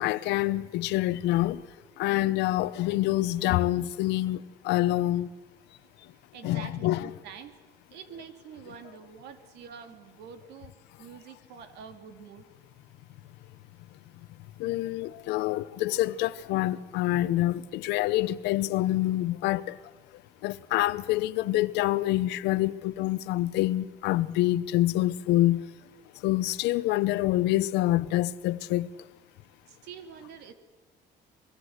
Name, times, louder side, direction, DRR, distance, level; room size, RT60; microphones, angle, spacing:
voice 1, 0.0-1.6 2.0-5.3 6.4-7.1 14.6-19.8 20.4-25.6 26.2-28.9, left 16 dB, 90° left, 0.9 m, -26 dB
voice 2, 6.3-7.6 7.9-10.7 11.0-12.4 29.7-30.5, right 7 dB, 85° right, 2.7 m, -46 dB
25.0 x 22.0 x 8.0 m
cardioid pair, 110°, 17 cm